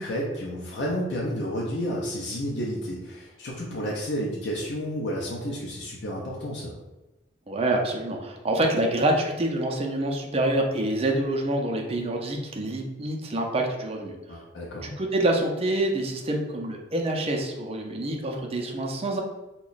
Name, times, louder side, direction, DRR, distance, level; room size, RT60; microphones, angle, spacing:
voice 1, 0.0-6.7 14.3-14.9, equal, 70° left, -3 dB, 0.6 m, -31 dB
voice 2, 7.5-14.1 14.8-19.2, right 1 dB, 35° right, 1 dB, 0.5 m, -26 dB
2.9 x 2.2 x 3.9 m, 1.0 s
head